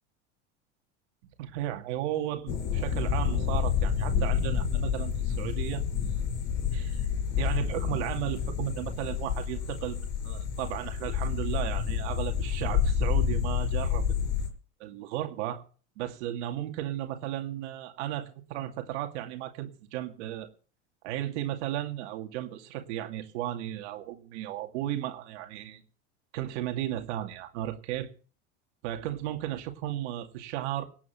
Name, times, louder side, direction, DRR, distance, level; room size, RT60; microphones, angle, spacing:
voice 1, 1.4-5.8 6.7-7.1 7.4-14.1 14.8-15.6 16.0-20.5 21.0-25.8 26.3-28.1 28.8-30.8, right 13 dB, 70° right, 5 dB, 2.4 m, -35 dB
sound 1, 2.5-14.5, left 7 dB, 55° left, 5.5 m, -29 dB
17.5 x 8.7 x 5.8 m, 0.39 s
supercardioid pair, 115°, 36 cm